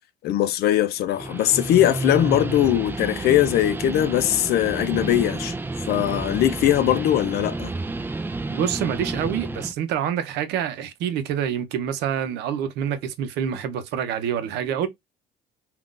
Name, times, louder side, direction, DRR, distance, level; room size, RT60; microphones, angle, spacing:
voice 1, 0.2-5.5 5.9-7.7, left 12 dB, 70° left, 0.5 m, -21 dB
Guitar, 1.0-9.7, right 3 dB, 10° right, 0.3 m, -30 dB
voice 2, 8.5-14.9, right 9 dB, 85° right, 0.7 m, -27 dB
3.7 x 2.4 x 2.4 m
cardioid pair, 110°, 17 cm